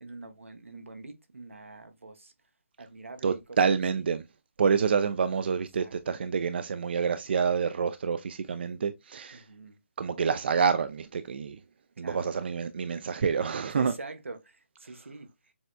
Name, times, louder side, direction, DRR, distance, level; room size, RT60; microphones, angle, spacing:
voice 1, 0.0-2.3 2.8-3.6 5.8-5.9 9.3-9.8 12.0-12.3 13.7-15.3, right 3 dB, 85° right, 1.2 m, -44 dB
voice 2, 3.2-4.2 4.6-9.4 10.0-11.6 12.0-13.9, right 6 dB, 55° right, 0.4 m, -27 dB
7.0 x 3.3 x 2.3 m
figure-of-eight pair, 150°, 7 cm